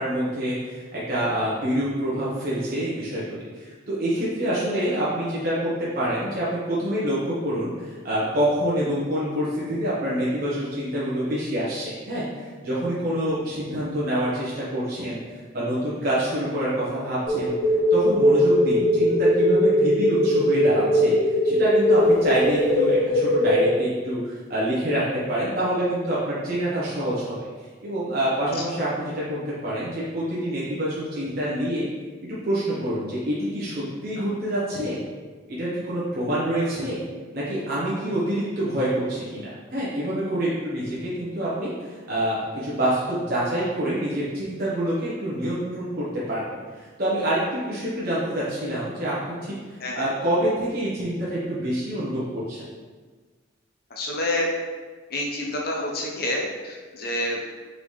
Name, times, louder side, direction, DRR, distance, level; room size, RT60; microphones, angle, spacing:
voice 1, 0.0-15.2 15.5-17.5 17.9-21.1 21.4-25.0 25.3-27.4 27.8-31.9 32.4-35.0 35.5-37.0 37.3-49.5 49.9-52.7, right 1 dB, 55° right, -8 dB, 1.0 m, -26 dB
sound 1, 17.3-23.7, equal, 75° left, 1.5 m, -20 dB
voice 2, 53.9-54.5 55.1-57.5, left 1 dB, 55° left, -1 dB, 0.8 m, -28 dB
4.0 x 3.7 x 3.1 m, 1.4 s
head